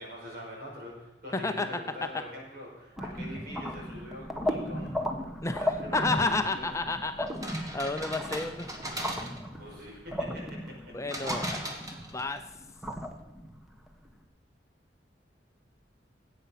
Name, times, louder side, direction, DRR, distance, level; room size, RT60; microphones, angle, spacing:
voice 1, 0.0-5.0 5.5-6.7 9.6-11.4, equal, 60° right, -2 dB, 5.2 m, -44 dB
voice 2, 1.3-1.7 5.4-5.6 5.9-8.7 10.9-11.6 12.1-12.4, left 3 dB, 15° left, 7 dB, 0.6 m, -31 dB
sound 1, 3.0-14.1, equal, ahead, 1.1 m, -36 dB
sound 2, 7.3-9.6 11.1-12.4, equal, 20° right, 1.8 m, -38 dB
17.0 x 8.4 x 5.7 m, 0.96 s
head